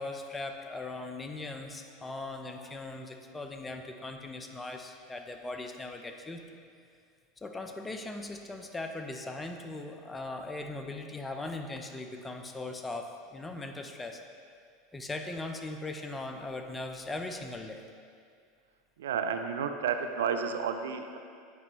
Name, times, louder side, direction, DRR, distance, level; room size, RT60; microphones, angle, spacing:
voice 1, 0.0-6.4 7.4-14.2 14.9-17.8, left 2 dB, 15° left, 5 dB, 0.6 m, -39 dB
voice 2, 19.0-21.2, right 6 dB, 80° right, 7 dB, 0.4 m, -31 dB
8.4 x 5.3 x 3.1 m, 2.3 s
hypercardioid pair, 85°, 0 cm